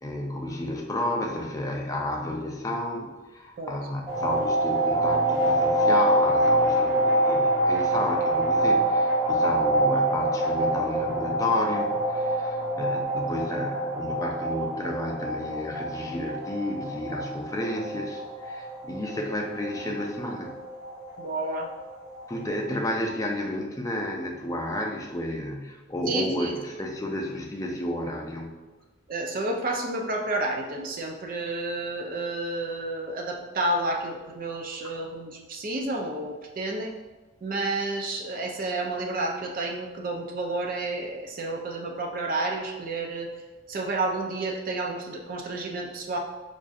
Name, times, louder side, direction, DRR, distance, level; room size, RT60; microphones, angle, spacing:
voice 1, 0.0-20.6 22.3-28.5 34.8-34.9, left 1 dB, 20° left, 1 dB, 0.4 m, -31 dB
sound 1, 4.1-22.7, right 1 dB, 15° right, 1.0 m, -26 dB
voice 2, 21.2-21.7 26.1-26.5 29.1-36.9 37.4-43.3 43.7-46.2, right 2 dB, 45° right, 1 dB, 0.4 m, -30 dB
5.0 x 2.5 x 2.4 m, 1.2 s
head